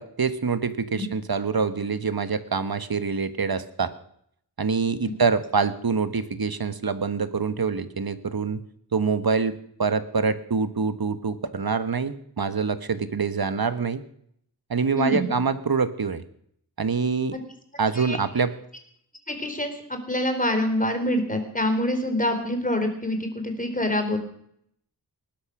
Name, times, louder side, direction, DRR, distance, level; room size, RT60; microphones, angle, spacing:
voice 1, 0.0-3.9 4.6-8.6 8.9-14.0 14.7-16.2 16.8-17.4 17.8-18.5, right 5 dB, 60° right, 12 dB, 1.3 m, -25 dB
voice 2, 14.9-15.3 17.9-18.2 19.3-24.2, left 1 dB, 20° left, 7 dB, 3.9 m, -26 dB
19.5 x 12.0 x 6.1 m, 0.68 s
wide cardioid pair, 55°, 41 cm